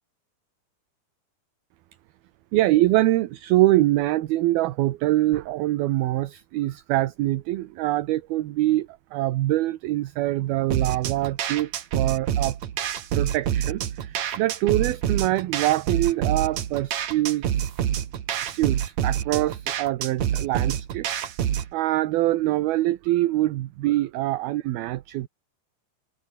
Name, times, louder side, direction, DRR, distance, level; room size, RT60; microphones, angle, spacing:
voice 1, 2.5-12.6 13.1-17.7 18.4-21.1 21.7-25.3, right 16 dB, 70° right, 2.6 m, -24 dB
sound 1, 10.7-21.7, right 10 dB, 55° right, 2.2 m, -27 dB
omnidirectional pair, 5.1 m